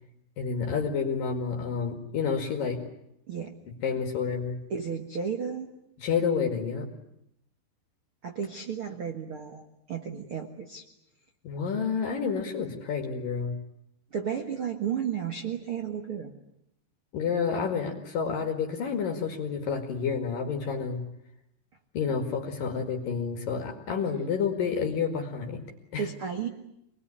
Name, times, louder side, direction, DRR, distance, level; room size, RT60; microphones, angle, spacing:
voice 1, 0.4-2.8 3.8-4.6 6.0-6.9 11.4-13.5 17.1-21.0 21.9-25.6 25.9-26.0, left 6 dB, 55° left, 3 dB, 3.4 m, -29 dB
voice 2, 4.7-5.7 8.2-10.8 14.1-16.3 26.0-26.5, right 7 dB, 75° right, 4 dB, 1.2 m, -33 dB
25.0 x 20.5 x 9.9 m, 0.79 s
omnidirectional pair, 5.2 m